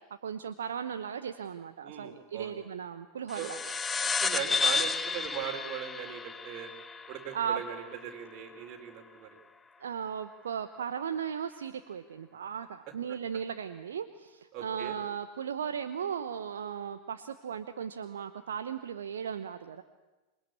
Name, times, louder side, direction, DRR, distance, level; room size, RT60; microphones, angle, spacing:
voice 1, 0.0-3.6 7.3-7.6 9.8-19.8, right 7 dB, 65° right, 9 dB, 1.0 m, -36 dB
voice 2, 1.8-2.6 3.4-3.5 4.0-6.7 7.1-9.4 14.5-15.0, right 10 dB, 40° right, 3 dB, 4.1 m, -39 dB
sound 1, 3.3-8.2, left 5 dB, 15° left, 0.8 m, -32 dB
27.5 x 21.5 x 8.6 m, 1.1 s
figure-of-eight pair, 90°, 0 cm